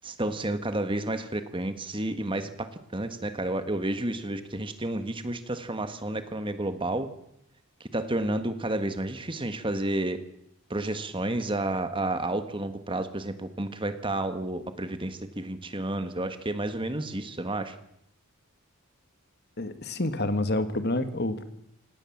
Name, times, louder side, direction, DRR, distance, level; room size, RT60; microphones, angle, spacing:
voice 1, 0.0-7.1 7.8-10.2 10.7-17.8, right 1 dB, 20° right, 9 dB, 1.6 m, -31 dB
voice 2, 19.6-21.4, left 2 dB, 45° left, 10 dB, 1.8 m, -28 dB
27.0 x 18.5 x 7.4 m, 0.76 s
head